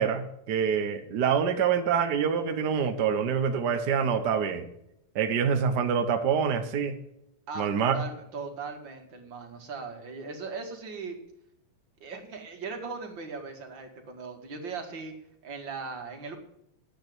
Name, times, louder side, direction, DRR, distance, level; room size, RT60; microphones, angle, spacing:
voice 1, 0.0-4.6 5.1-6.9 7.6-7.9, right 7 dB, 75° right, 7 dB, 0.9 m, -26 dB
voice 2, 7.5-11.1 12.0-15.1 15.4-16.4, right 4 dB, 40° right, 3 dB, 2.5 m, -38 dB
10.5 x 8.9 x 7.9 m, 0.79 s
omnidirectional pair, 3.5 m